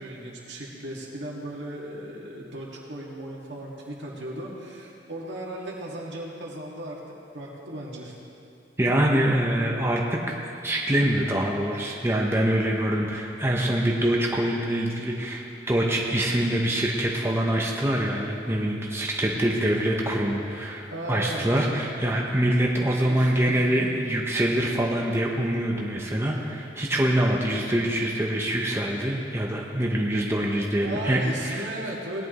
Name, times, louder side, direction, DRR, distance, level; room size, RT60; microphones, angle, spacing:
voice 1, 0.0-7.0 7.3-8.1 20.9-21.7 23.1-23.8 30.8-32.3, right 1 dB, 80° right, -3 dB, 2.0 m, -36 dB
voice 2, 8.8-10.4 10.6-31.7, right 1 dB, 15° right, -1 dB, 0.8 m, -25 dB
17.5 x 10.5 x 3.1 m, 2.7 s
head